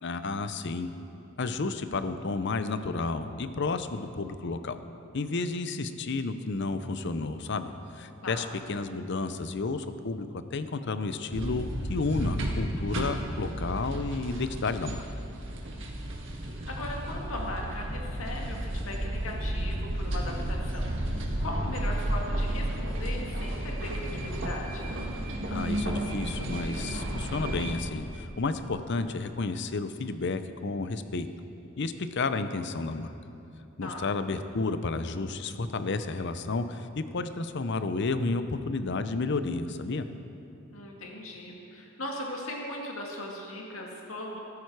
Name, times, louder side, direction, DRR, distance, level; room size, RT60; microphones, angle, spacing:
voice 1, 0.0-0.9 1.4-4.8 5.1-15.1 25.5-31.3 31.8-33.1 33.8-40.1, left 3 dB, 60° left, 10 dB, 0.6 m, -31 dB
sound 1, 11.3-27.8, right 1 dB, 65° right, 1.7 m, -32 dB
voice 2, 16.4-25.0 33.8-34.1 40.7-44.4, left 1 dB, 85° left, -1 dB, 2.0 m, -38 dB
14.0 x 13.5 x 4.8 m, 2.8 s
head